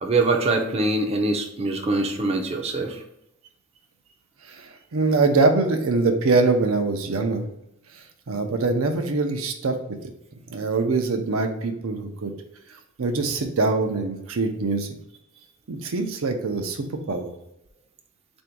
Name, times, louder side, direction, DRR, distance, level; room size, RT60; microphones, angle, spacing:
voice 1, 0.0-3.0, right 2 dB, 30° right, 3 dB, 0.4 m, -23 dB
voice 2, 4.4-7.5 8.3-9.8 10.5-12.3 13.0-14.9 15.7-17.3, right 3 dB, 90° right, 5 dB, 0.6 m, -23 dB
3.4 x 2.6 x 4.5 m, 0.82 s
head